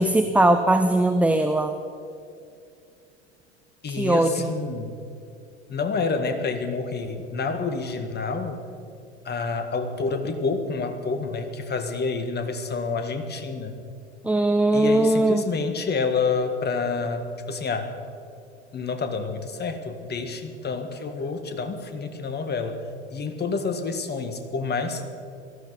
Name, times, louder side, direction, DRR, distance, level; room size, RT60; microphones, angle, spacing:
voice 1, 0.0-1.7 3.9-4.5 14.2-15.4, right 1 dB, 5° right, 8 dB, 0.7 m, -20 dB
voice 2, 3.8-4.9 5.7-8.6 9.2-13.8 14.7-17.9 18.7-22.8 23.1-25.0, left 4 dB, 30° left, 8 dB, 1.9 m, -28 dB
19.5 x 14.0 x 5.4 m, 2.5 s
figure-of-eight pair, 80°, 35 cm